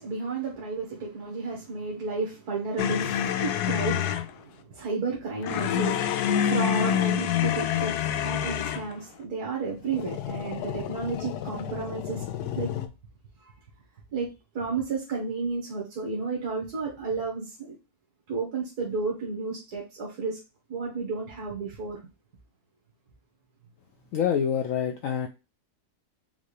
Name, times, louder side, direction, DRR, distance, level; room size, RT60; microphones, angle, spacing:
voice 1, 0.0-12.2 12.5-12.7 13.4-13.5 14.1-14.3 14.6-17.8 18.3-20.4 20.7-22.0, right 4 dB, 80° right, 1.8 m, -32 dB
sound 1, 2.8-4.3 5.4-8.9 9.9-12.9, left 10 dB, 90° left, 1.1 m, -28 dB
voice 2, 24.1-25.3, left 8 dB, 70° left, 0.9 m, -26 dB
5.5 x 2.4 x 3.2 m
omnidirectional pair, 1.6 m